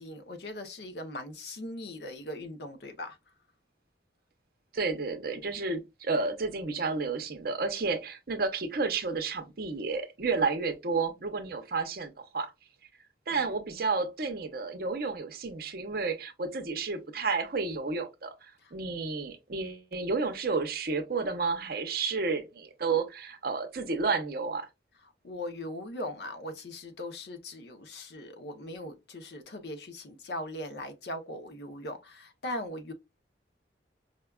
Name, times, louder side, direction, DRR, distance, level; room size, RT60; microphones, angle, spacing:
voice 1, 0.0-3.2 13.3-13.4 25.2-32.9, left 1 dB, 65° left, 0.6 m, -39 dB
voice 2, 4.7-12.5 13.3-24.7, right 4 dB, 55° right, 0.7 m, -31 dB
4.9 x 2.3 x 2.2 m
head